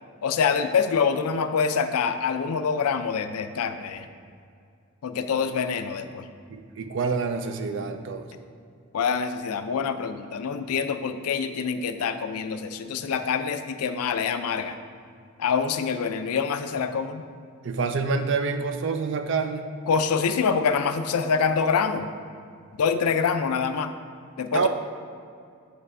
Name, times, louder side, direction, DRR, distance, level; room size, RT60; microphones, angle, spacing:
voice 1, 0.2-4.1 5.0-6.3 8.9-14.7 15.4-17.2 19.9-22.1 22.8-23.9 24.4-24.7, left 6 dB, 85° left, 9 dB, 0.4 m, -25 dB
voice 2, 6.5-8.3 17.6-19.7 24.5-24.7, right 4 dB, 55° right, 8 dB, 0.4 m, -27 dB
8.0 x 3.3 x 4.7 m, 2.3 s
head